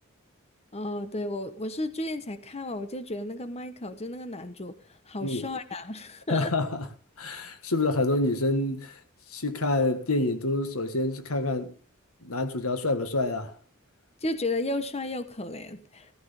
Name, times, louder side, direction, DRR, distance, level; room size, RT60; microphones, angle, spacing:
voice 1, 0.7-6.5 14.2-16.1, left 2 dB, 30° left, 1.1 m, -33 dB
voice 2, 6.3-6.9 7.2-9.0 9.3-11.7 12.2-13.5, left 2 dB, 90° left, 1.7 m, -27 dB
17.0 x 14.0 x 3.6 m
head